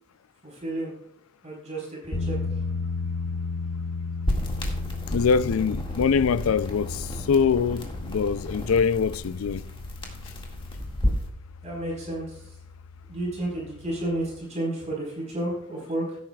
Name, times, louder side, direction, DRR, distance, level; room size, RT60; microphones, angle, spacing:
voice 1, 0.4-0.9 1.4-2.4 11.6-12.4 13.1-16.2, right 1 dB, 35° right, 4.3 m, -31 dB
sound 1, 2.1-14.4, left 4 dB, 60° left, 1.7 m, -35 dB
sound 2, 4.3-11.3, equal, 25° left, 2.0 m, -32 dB
voice 2, 5.1-9.7, left 6 dB, 80° left, 0.4 m, -23 dB
16.5 x 9.2 x 2.3 m
head